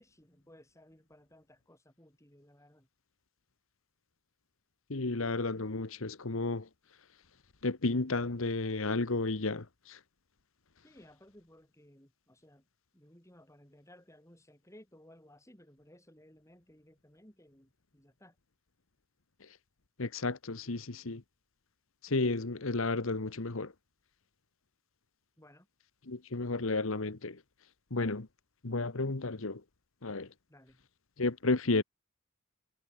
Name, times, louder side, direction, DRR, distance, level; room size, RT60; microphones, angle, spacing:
voice 1, 0.0-2.9 10.8-12.6 12.9-18.4 25.4-25.7 30.5-30.9, left 1 dB, 15° left, 8.0 m, -59 dB
voice 2, 4.9-6.7 7.6-10.0 19.4-19.6 20.0-21.2 22.0-23.7 26.1-27.4 27.9-28.3 28.6-29.6 30.0-30.3 31.2-31.8, left 3 dB, 70° left, 1.2 m, -32 dB
head